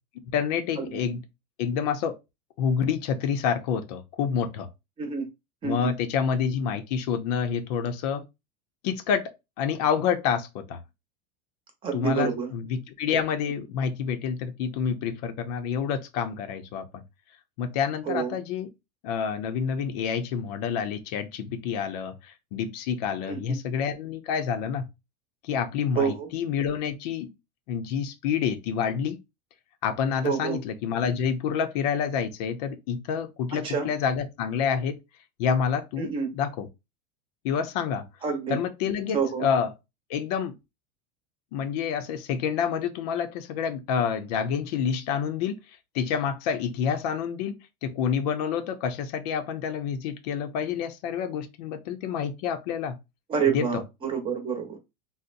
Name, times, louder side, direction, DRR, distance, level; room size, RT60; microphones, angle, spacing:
voice 1, 0.3-1.2 1.6-2.1 2.6-4.7 5.6-8.2 8.8-9.2 9.6-10.8 11.9-17.0 17.6-18.7 19.0-24.9 25.4-27.3 27.7-29.2 29.8-35.0 35.4-36.7 37.4-38.0 38.5-39.7 40.1-40.5 41.5-45.5 45.9-53.0 53.5-53.8, left 7 dB, 70° left, 0.6 m, -28 dB
voice 2, 5.6-5.9 11.8-12.5 18.1-18.3 23.3-23.6 26.0-26.3 30.2-30.6 33.5-33.9 36.0-36.3 38.2-38.6 39.1-39.4 53.3-54.8, right 6 dB, 25° right, 0.8 m, -28 dB
4.0 x 2.1 x 2.5 m
supercardioid pair, 150°, 21 cm